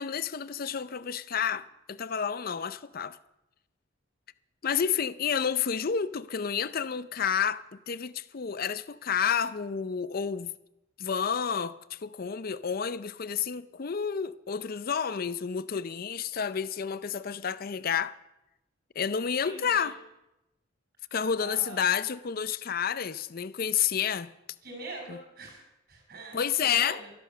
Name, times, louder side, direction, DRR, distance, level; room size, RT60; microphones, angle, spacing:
voice 1, 0.0-3.2 4.6-10.5 11.0-18.1 19.0-20.0 21.1-24.3 25.1-25.2 26.3-27.0, left 7 dB, 50° left, 0.5 m, -30 dB
voice 2, 19.4-19.9 21.4-21.9 24.6-25.6 25.9-27.1, right 2 dB, 55° right, 5.0 m, -43 dB
13.0 x 11.5 x 6.5 m
head